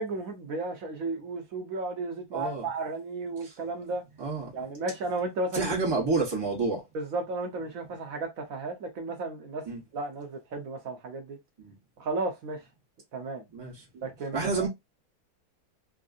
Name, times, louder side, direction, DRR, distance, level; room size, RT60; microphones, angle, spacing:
voice 1, 0.0-4.0 4.5-5.7 6.9-9.6 9.9-11.4 12.0-12.6 13.1-13.4 13.9-14.7, right 3 dB, 65° right, 0.9 m, -34 dB
voice 2, 2.3-2.7 3.4-3.6 4.2-4.5 5.5-6.8 9.6-9.8 11.6-11.7 13.5-13.8 14.3-14.7, right 3 dB, 35° right, 0.3 m, -29 dB
3.4 x 2.5 x 2.4 m
omnidirectional pair, 2.1 m